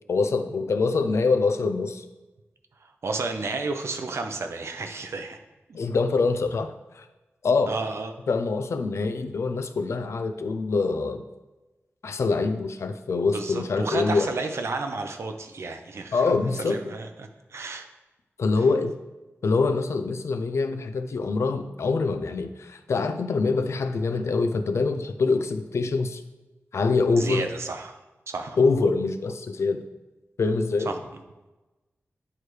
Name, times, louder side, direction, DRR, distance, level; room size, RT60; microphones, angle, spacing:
voice 1, 0.1-2.0 5.7-7.1 7.4-7.7 8.3-11.2 12.0-14.3 16.1-16.8 18.4-18.9 19.4-26.2 26.7-27.4 28.6-29.9 30.4-30.9, left 4 dB, 75° left, 9 dB, 0.5 m, -24 dB
voice 2, 2.8-5.4 7.7-8.1 13.3-16.2 16.6-17.9 27.1-27.9 28.3-28.6 30.9-31.2, right 3 dB, 70° right, 5 dB, 0.7 m, -32 dB
9.7 x 4.6 x 3.3 m, 1.1 s
wide cardioid pair, 115°, 5 cm